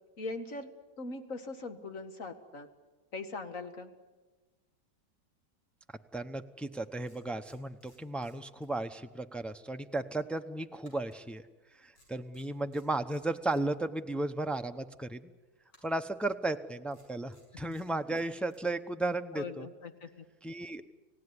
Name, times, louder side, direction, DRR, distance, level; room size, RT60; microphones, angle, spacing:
voice 1, 0.2-0.7 1.0-2.7 3.1-3.9 19.3-20.2, left 3 dB, 50° left, 8 dB, 2.2 m, -41 dB
voice 2, 6.1-11.4 11.8-15.3 15.8-19.7 20.4-20.8, right 2 dB, ahead, 7 dB, 0.5 m, -35 dB
sound 1, 6.5-6.7 7.0-9.1 9.4-9.6 10.8-11.7 11.9-13.7 15.7-16.2 16.9-18.7, left 1 dB, 85° left, 7.8 m, -65 dB
30.0 x 17.0 x 9.8 m, 1.2 s
omnidirectional pair, 1.8 m